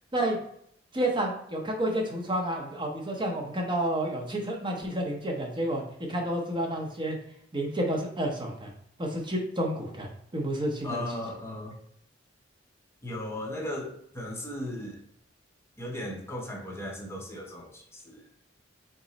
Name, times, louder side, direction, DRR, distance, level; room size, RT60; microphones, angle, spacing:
voice 1, 0.9-5.8 6.1-7.2 7.5-8.7 9.0-11.0, right 1 dB, 25° right, 1 dB, 0.7 m, -30 dB
voice 2, 10.8-11.8 13.0-15.0 15.8-18.3, left 1 dB, 15° left, -1 dB, 0.6 m, -36 dB
3.6 x 3.0 x 4.0 m, 0.68 s
head